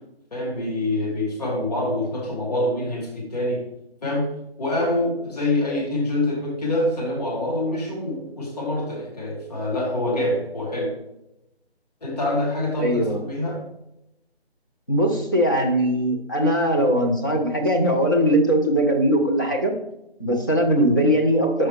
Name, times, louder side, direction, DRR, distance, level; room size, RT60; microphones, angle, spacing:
voice 1, 0.3-3.7 4.0-4.3 4.6-10.9 12.0-13.6, left 1 dB, 40° left, -4 dB, 2.6 m, -25 dB
voice 2, 12.8-13.2 14.9-19.7 20.2-21.7, equal, 20° left, -1 dB, 0.7 m, -20 dB
6.6 x 4.8 x 4.3 m, 0.85 s
figure-of-eight pair, 160°, 32 cm